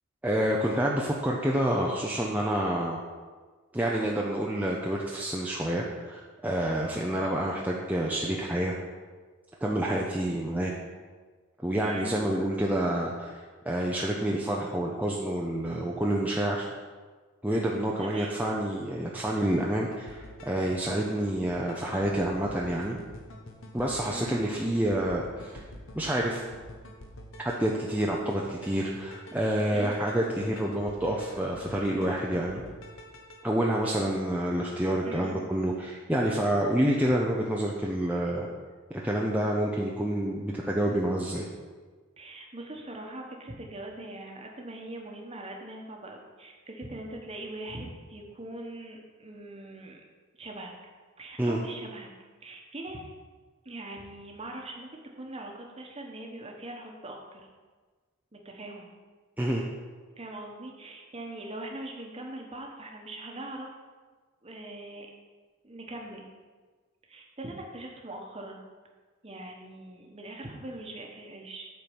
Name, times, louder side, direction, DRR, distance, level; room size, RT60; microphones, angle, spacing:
voice 1, 0.2-3.0 3.7-8.7 9.6-10.7 11.6-16.7 17.4-23.0 23.7-25.6 26.0-26.4 27.4-32.6 33.4-38.5 38.9-41.5 51.4-51.6 59.4-59.6, right 1 dB, 5° right, -3 dB, 0.6 m, -28 dB
voice 2, 11.8-12.2 18.0-18.4 24.1-24.4 29.7-30.0 33.8-34.0 35.0-35.4 42.2-50.0 50.4-50.7 51.2-52.1 52.4-53.1 53.6-57.4 58.3-58.9 60.2-63.7 64.4-65.1 65.6-66.3 67.1-68.6 69.2-71.7, right 1 dB, 30° right, 1 dB, 1.1 m, -41 dB
sound 1, 19.5-33.4, left 1 dB, 60° left, 1.0 m, -47 dB
8.3 x 4.5 x 7.1 m, 1.4 s
head